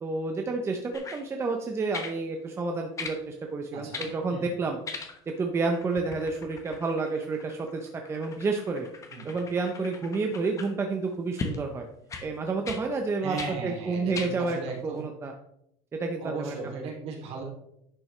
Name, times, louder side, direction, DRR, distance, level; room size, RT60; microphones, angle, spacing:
voice 1, 0.0-4.8 5.4-8.9 9.2-11.9 12.2-13.4 13.6-14.6 14.8-15.3 15.9-16.9, right 3 dB, 20° right, 3 dB, 0.7 m, -30 dB
sound 1, 0.9-1.2 1.9-2.2 3.0-3.2 3.9-4.2 4.8-5.4 5.6-10.7 11.4-11.6 12.1-12.3 12.6-12.8 13.4-13.5 14.1-14.3 15.0-15.1, left 4 dB, 25° left, 1.1 m, -39 dB
voice 2, 3.7-4.1 4.3-4.4 9.1-9.3 13.2-15.0 16.2-17.4, right 4 dB, 50° right, -1 dB, 2.9 m, -36 dB
10.5 x 5.9 x 3.3 m, 0.77 s
cardioid pair, 145°, 13 cm